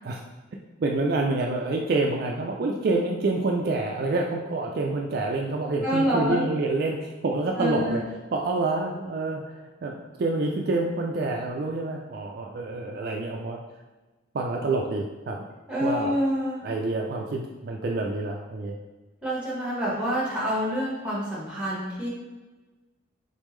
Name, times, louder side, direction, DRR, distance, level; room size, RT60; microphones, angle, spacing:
voice 1, 0.8-8.0 8.3-13.6 14.3-15.4 15.8-16.1 16.6-18.8, right 2 dB, 50° right, 1 dB, 0.3 m, -27 dB
voice 2, 5.8-6.4 7.6-8.0 15.7-16.6 19.2-22.1, equal, 5° right, -6 dB, 1.2 m, -27 dB
3.9 x 3.5 x 3.1 m, 1.2 s
head